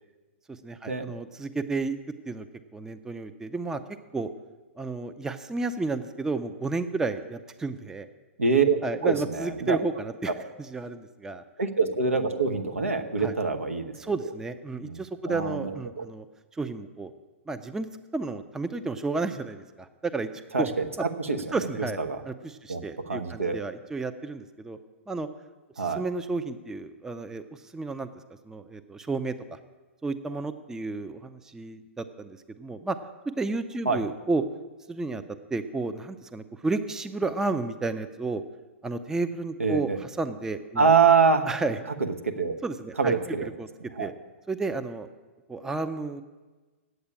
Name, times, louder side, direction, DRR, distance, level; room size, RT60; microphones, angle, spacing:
voice 1, 0.6-2.0 2.3-2.5 2.7-3.8 4.1-4.3 4.8-8.1 8.8-10.3 10.7-11.4 13.2-13.3 14.0-16.3 16.5-17.1 17.5-17.9 18.1-20.3 20.6-20.7 21.5-22.0 22.2-24.8 25.1-25.3 26.0-28.1 28.5-29.6 30.0-33.0 33.4-34.4 34.9-35.2 35.5-38.4 38.8-40.9 41.5-41.8 42.6-43.1 43.4-43.7 44.0-44.1 44.5-45.1 45.5-46.2, right 3 dB, 5° right, 10 dB, 0.4 m, -32 dB
voice 2, 8.4-9.8 10.3-10.4 11.6-13.9 14.8-15.0 15.3-16.1 20.5-21.7 22.0-22.2 22.7-23.6 25.8-26.0 33.8-34.1 39.6-40.0 40.8-41.5 42.0-42.6 43.0-43.5 43.9-44.1, right 5 dB, 80° right, 5 dB, 1.1 m, -25 dB
8.6 x 8.0 x 8.6 m, 1.3 s
figure-of-eight pair, 115°, 7 cm